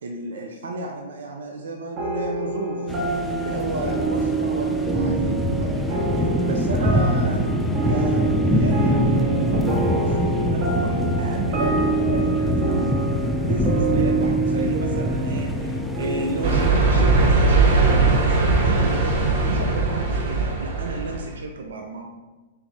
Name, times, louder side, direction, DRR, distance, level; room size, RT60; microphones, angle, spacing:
voice 1, 0.0-7.6 7.9-12.8 13.2-22.0, right 2 dB, 75° right, 2 dB, 0.5 m, -33 dB
sound 1, 2.0-18.8, right 4 dB, 40° right, 0.9 m, -27 dB
sound 2, 2.9-16.7, left 1 dB, 5° left, 0.4 m, -24 dB
sound 3, 16.4-21.3, right 3 dB, 60° right, 1.2 m, -19 dB
3.5 x 3.4 x 4.0 m, 1.2 s
hypercardioid pair, 120°, 0 cm